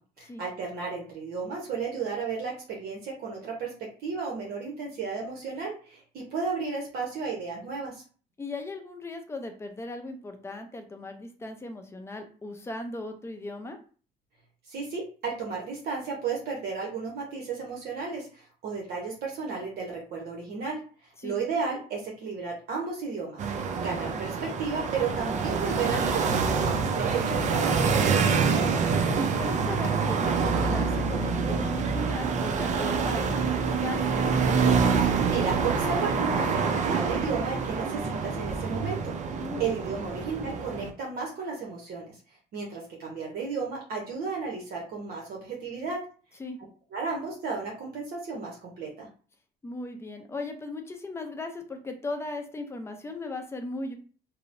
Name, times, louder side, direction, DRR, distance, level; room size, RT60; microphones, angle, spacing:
voice 1, 0.2-3.7 4.0-8.0 14.7-23.4 23.8-28.7 35.2-39.1 39.6-42.2 42.5-46.0 46.9-49.1, right 5 dB, 65° right, -2 dB, 0.8 m, -33 dB
voice 2, 8.4-13.8 21.2-21.4 29.2-34.2 39.4-39.7 46.4-46.6 49.6-54.0, left 2 dB, 15° left, 5 dB, 0.5 m, -37 dB
sound 1, 23.4-40.9, right 5 dB, 45° right, 0.4 m, -26 dB
2.9 x 2.0 x 2.6 m, 0.39 s
cardioid pair, 110°, 17 cm